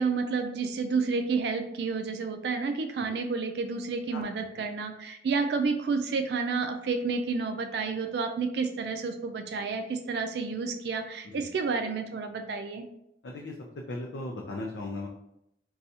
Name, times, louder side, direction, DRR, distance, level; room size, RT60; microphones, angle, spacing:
voice 1, 0.0-12.9, right 4 dB, 65° right, 6 dB, 0.3 m, -30 dB
voice 2, 13.2-13.5 13.9-15.1, left 2 dB, 85° left, 0 dB, 0.4 m, -36 dB
2.7 x 2.3 x 4.0 m, 0.78 s
head